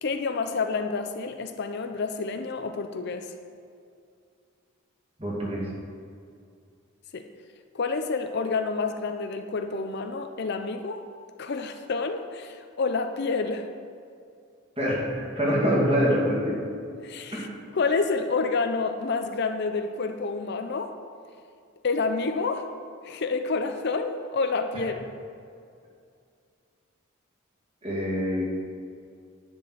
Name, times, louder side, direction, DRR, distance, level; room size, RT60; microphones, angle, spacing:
voice 1, 0.0-3.3 7.1-7.3 7.7-11.0 11.4-13.7 17.0-17.5 17.7-20.9 21.8-22.7 23.0-25.1, left 4 dB, 50° left, 7 dB, 0.5 m, -28 dB
voice 2, 5.2-5.7 14.8-16.6 17.3-17.5 24.7-24.8 27.8-28.4, equal, 25° right, -5 dB, 2.3 m, -25 dB
10.5 x 4.4 x 7.8 m, 2.4 s
head